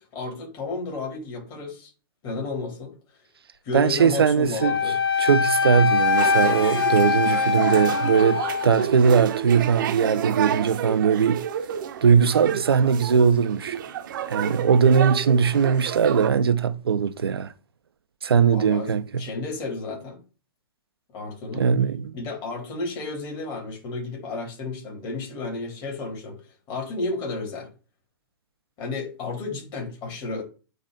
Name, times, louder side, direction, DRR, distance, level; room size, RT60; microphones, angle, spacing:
voice 1, 0.0-1.9 2.2-3.0 3.6-5.0 18.5-18.9 19.2-20.2 21.1-21.7 22.1-26.4 26.7-27.7 28.8-30.4, left 3 dB, 35° left, 3.5 m, -32 dB
voice 2, 3.7-4.7 5.2-11.4 12.0-13.8 14.3-17.5 18.2-19.2 21.5-22.1, right 6 dB, 85° right, 0.7 m, -20 dB
Wind instrument woodwind instrument, 4.6-8.9, left 5 dB, 75° left, 0.8 m, -23 dB
sound 1, 6.2-16.3, right 9 dB, 60° right, 0.9 m, -30 dB
9.1 x 3.1 x 3.9 m
hypercardioid pair, 125°, 12 cm